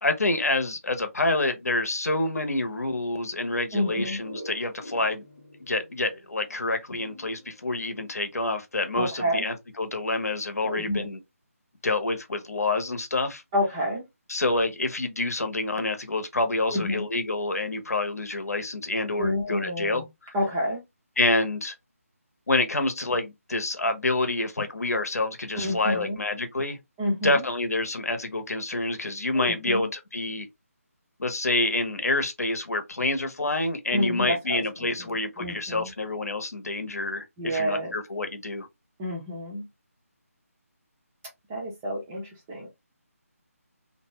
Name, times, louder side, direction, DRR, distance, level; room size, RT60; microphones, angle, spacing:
voice 1, 0.0-5.2 5.6-11.2 11.8-13.4 14.3-20.3 21.2-21.7 22.5-26.8 27.2-30.5 31.2-38.7, left 2 dB, 80° left, 0.8 m, -27 dB
voice 2, 3.7-4.2 8.9-9.5 10.6-11.1 13.5-14.0 16.7-17.0 19.2-20.1 20.3-20.8 25.6-26.2 27.0-27.5 29.3-29.9 33.9-35.9 37.4-38.0 39.0-39.7 41.5-42.7, left 1 dB, 10° right, 0.3 m, -29 dB
sound 1, 3.8-8.4, equal, 15° left, 0.7 m, -45 dB
2.6 x 2.2 x 2.9 m
figure-of-eight pair, 170°, 8 cm